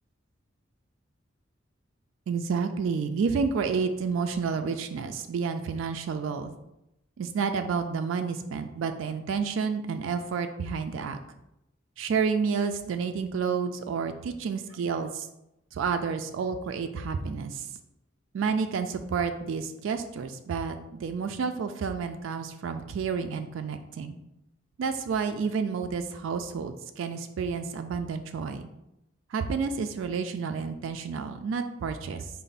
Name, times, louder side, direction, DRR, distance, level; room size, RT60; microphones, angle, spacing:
voice 1, 2.3-6.5 7.2-11.2 12.0-15.3 15.7-17.7 18.3-24.2 24.8-28.7 29.3-32.3, right 5 dB, 80° right, 7 dB, 0.3 m, -30 dB
4.3 x 2.0 x 3.9 m, 0.87 s
head